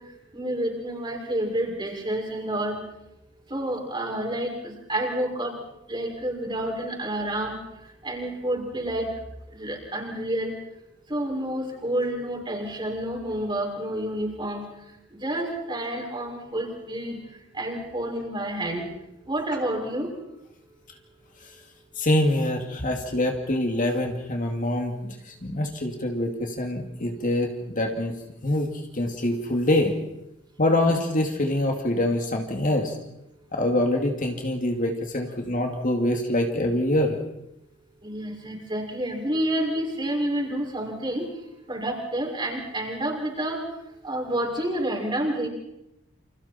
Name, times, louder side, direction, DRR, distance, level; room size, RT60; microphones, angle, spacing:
voice 1, 0.3-2.8 3.5-5.5 5.9-7.6 8.0-9.1 9.5-10.5 11.1-14.6 15.1-17.2 17.5-18.9 19.3-20.1 38.0-41.2 41.7-43.6 44.0-45.5, right 1 dB, 25° right, 0 dB, 6.1 m, -29 dB
voice 2, 22.0-25.1 25.4-28.1 28.4-28.7 28.9-29.9 30.6-32.9 33.5-37.2, left 1 dB, 40° left, 3 dB, 2.6 m, -25 dB
29.0 x 27.0 x 4.5 m, 0.84 s
head